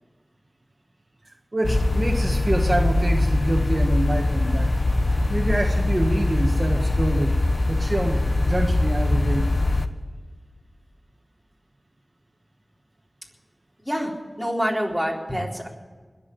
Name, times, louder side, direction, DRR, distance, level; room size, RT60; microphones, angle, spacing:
voice 1, 1.5-4.7 5.0-7.4 7.7-9.5, right 1 dB, 40° right, 2 dB, 1.5 m, -26 dB
sound 1, 1.6-9.9, left 2 dB, 50° left, 1.0 m, -22 dB
voice 2, 13.8-15.7, equal, 5° left, -2 dB, 3.8 m, -27 dB
20.5 x 7.5 x 9.2 m, 1.5 s
wide cardioid pair, 50°, 0 cm